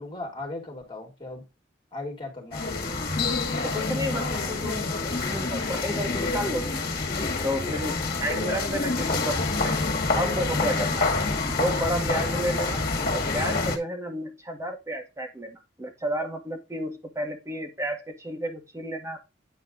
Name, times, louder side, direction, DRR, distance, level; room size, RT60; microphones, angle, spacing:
voice 1, 0.0-1.4 1.9-2.7, left 2 dB, 25° left, 2.9 m, -37 dB
sound 1, 2.5-13.8, left 3 dB, 55° left, 1.9 m, -27 dB
voice 2, 3.6-4.9 5.3-6.8 7.4-9.4 9.6-9.8 10.2-11.1 11.5-12.8 13.1-19.2, equal, 15° right, 1.7 m, -31 dB
9.2 x 4.3 x 3.9 m
head